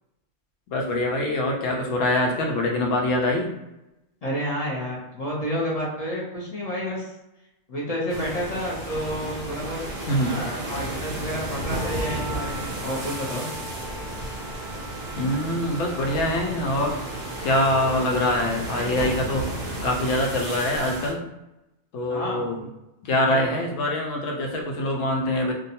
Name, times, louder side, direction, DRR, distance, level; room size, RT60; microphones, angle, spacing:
voice 1, 0.7-3.5 10.1-10.4 15.2-17.0 17.4-19.5 19.8-21.2 21.9-22.6 23.0-25.5, left 1 dB, 90° left, 1 dB, 1.0 m, -24 dB
voice 2, 4.2-7.1 7.7-13.5 22.1-22.7 23.3-23.6, equal, 45° left, -4 dB, 0.5 m, -30 dB
sound 1, 8.1-21.1, right 1 dB, 55° right, 0.5 m, -33 dB
Wind instrument woodwind instrument, 11.6-17.9, right 1 dB, 70° left, 1.1 m, -42 dB
2.6 x 2.2 x 2.7 m, 0.92 s
omnidirectional pair, 1.3 m